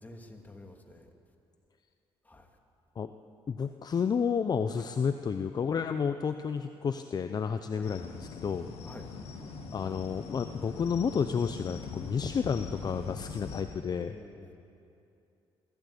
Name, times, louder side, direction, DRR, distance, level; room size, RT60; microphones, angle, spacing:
voice 1, 0.0-1.1 2.2-2.5 4.7-4.8 7.8-7.9 8.8-9.1 14.0-14.5, left 2 dB, 15° left, 3 dB, 2.7 m, -49 dB
voice 2, 3.5-8.7 9.7-14.1, left 6 dB, 40° left, 9 dB, 0.8 m, -31 dB
sound 1, 7.8-13.6, left 5 dB, 80° left, 2.5 m, -42 dB
22.5 x 16.0 x 8.5 m, 2.6 s
cardioid pair, 90°, 10 cm